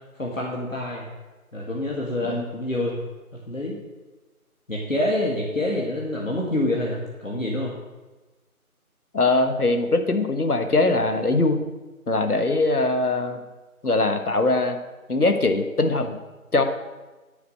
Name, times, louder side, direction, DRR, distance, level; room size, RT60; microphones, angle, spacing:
voice 1, 0.1-1.1 1.5-3.0 3.5-3.8 4.7-7.7, left 1 dB, 60° left, -3 dB, 2.0 m, -27 dB
voice 2, 9.1-11.6 12.1-13.4 13.8-14.8 15.1-16.2 16.5-16.6, left 2 dB, 80° left, 7 dB, 1.5 m, -21 dB
9.8 x 5.2 x 7.7 m, 1.2 s
figure-of-eight pair, 180°, 44 cm